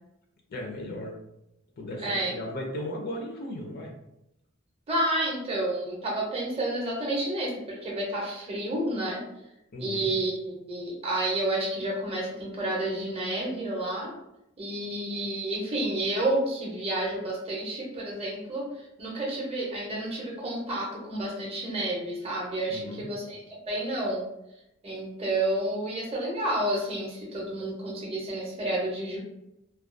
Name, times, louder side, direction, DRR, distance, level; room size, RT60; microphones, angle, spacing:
voice 1, 0.5-1.1 1.8-4.0 9.7-10.1 22.7-23.1, left 1 dB, 50° left, 1 dB, 0.5 m, -36 dB
voice 2, 2.0-2.3 4.9-9.2 9.8-14.1 14.6-18.7 19.0-23.4 23.7-24.3 24.8-29.2, right 1 dB, 30° right, -3 dB, 0.6 m, -30 dB
2.3 x 2.2 x 2.4 m, 0.85 s
head